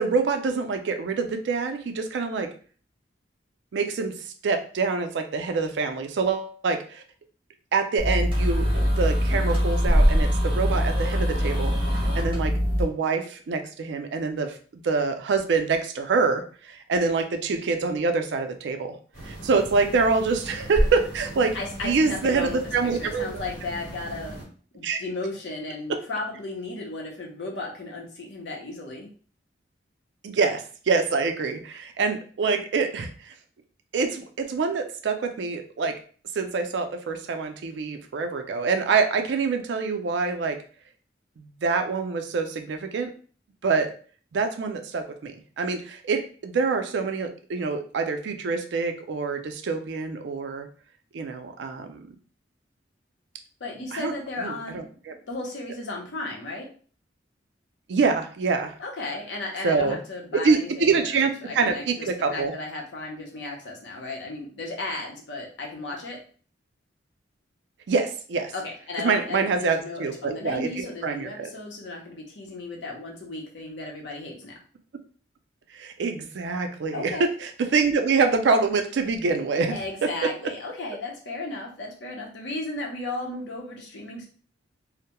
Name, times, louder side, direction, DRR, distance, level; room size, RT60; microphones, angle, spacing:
voice 1, 0.0-2.5 3.7-4.1 4.4-7.0 7.7-8.7 9.0-11.7 12.1-18.9 19.3-21.6 21.8-23.3 24.8-25.0 30.2-33.3 33.9-35.9 36.4-40.6 41.4-43.1 43.6-43.9 44.3-50.7 51.1-52.1 53.9-54.1 54.4-55.1 57.9-58.7 59.6-60.0 60.3-62.5 67.9-68.5 69.0-70.7 71.0-71.5 75.7-79.7, right 4 dB, 70° right, 6 dB, 0.4 m, -25 dB
sound 1, 8.0-12.8, equal, 30° right, 0.8 m, -22 dB
sound 2, 19.1-24.4, equal, 50° left, 1.2 m, -33 dB
voice 2, 21.5-29.1 53.6-54.8 55.3-56.7 58.8-66.2 68.5-74.6 76.9-77.3 79.7-84.3, left 2 dB, 75° left, 0 dB, 0.7 m, -35 dB
2.2 x 2.0 x 2.9 m, 0.42 s
head